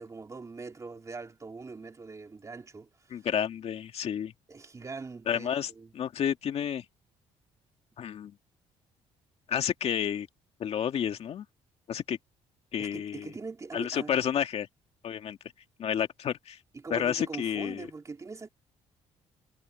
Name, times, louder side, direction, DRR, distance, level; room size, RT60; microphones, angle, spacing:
voice 1, 0.0-3.3 4.5-5.5 5.7-5.9 12.8-14.2 16.7-18.5, right 4 dB, 25° right, 3.1 m, -42 dB
voice 2, 3.1-4.3 5.3-6.8 8.0-8.4 9.5-10.3 10.6-11.5 11.9-12.2 12.7-13.3 13.7-14.7 15.0-15.4 15.8-16.6 16.9-17.9, left 9 dB, 55° left, 2.2 m, -30 dB
cardioid pair, 105°, 12 cm